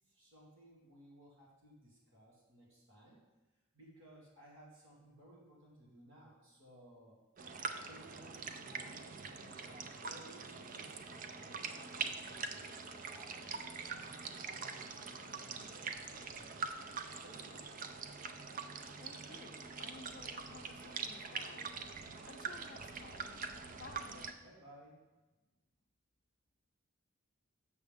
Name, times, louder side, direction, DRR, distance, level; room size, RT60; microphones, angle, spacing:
voice 1, 0.1-3.2 3.7-7.2 7.8-13.4 13.9-16.7 17.2-17.7 24.4-25.0, right 1 dB, 70° right, -5 dB, 2.0 m, -59 dB
sound 1, 7.4-24.3, right 5 dB, 40° right, 0.4 m, -44 dB
voice 2, 18.9-21.7 22.0-23.5 23.8-24.3, left 4 dB, 45° left, 6 dB, 0.5 m, -55 dB
7.1 x 6.5 x 3.5 m, 1.1 s
head